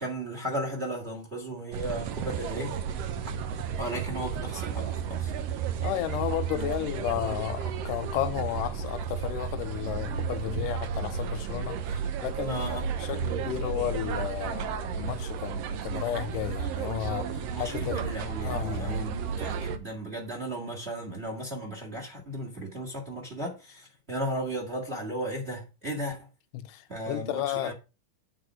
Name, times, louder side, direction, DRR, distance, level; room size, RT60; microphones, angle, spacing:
voice 1, 0.0-2.8 3.8-5.3 12.5-12.9 17.3-26.3 26.9-27.7, right 1 dB, 25° right, 1.5 m, -35 dB
sound 1, 1.7-19.8, right 7 dB, 70° right, 1.6 m, -33 dB
voice 2, 5.8-11.8 12.2-17.3 17.6-18.0 18.4-19.1 26.5-27.7, left 12 dB, 90° left, 2.3 m, -33 dB
8.6 x 4.0 x 6.0 m
omnidirectional pair, 3.7 m